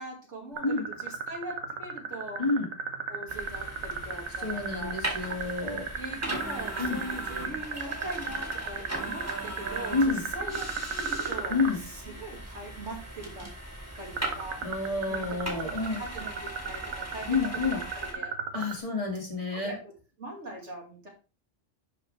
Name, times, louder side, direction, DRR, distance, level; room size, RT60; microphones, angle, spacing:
voice 1, 0.0-2.4 3.1-5.0 6.0-13.5 13.9-14.6 15.1-18.3 18.6-18.8 19.5-19.9 20.2-21.1, right 1 dB, 60° right, -1 dB, 2.6 m, -41 dB
sound 1, 0.6-11.7 14.2-18.8, right 6 dB, 85° right, 1.4 m, -34 dB
sound 2, 3.3-18.1, right 1 dB, 10° right, 2.0 m, -39 dB
voice 2, 4.4-5.9 6.8-7.0 9.9-10.3 11.5-11.8 14.6-16.0 17.3-17.8 18.5-19.7, left 3 dB, 25° left, -2 dB, 2.1 m, -29 dB
10.5 x 4.9 x 3.3 m, 0.34 s
omnidirectional pair, 1.3 m